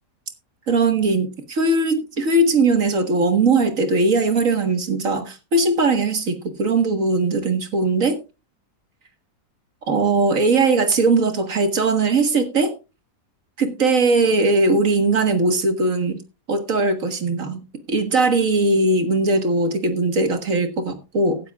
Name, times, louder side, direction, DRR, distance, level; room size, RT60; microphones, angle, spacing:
voice 1, 0.7-8.2 9.9-12.7 13.6-16.2 16.5-17.6 17.9-21.4, right 3 dB, 55° right, 1.9 m, -19 dB
16.0 x 11.5 x 2.4 m
omnidirectional pair, 1.7 m